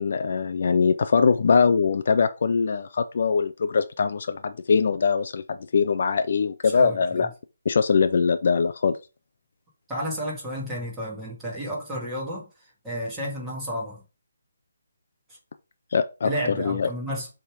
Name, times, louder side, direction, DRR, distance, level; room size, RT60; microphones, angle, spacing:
voice 1, 0.0-7.3 7.7-9.0 15.9-16.3 16.6-16.9, left 5 dB, 50° left, 0.4 m, -22 dB
voice 2, 6.7-7.3 9.9-12.5 12.8-14.0 16.2-17.3, equal, 5° right, 2.1 m, -31 dB
7.1 x 3.5 x 5.0 m
hypercardioid pair, 170°, 0 cm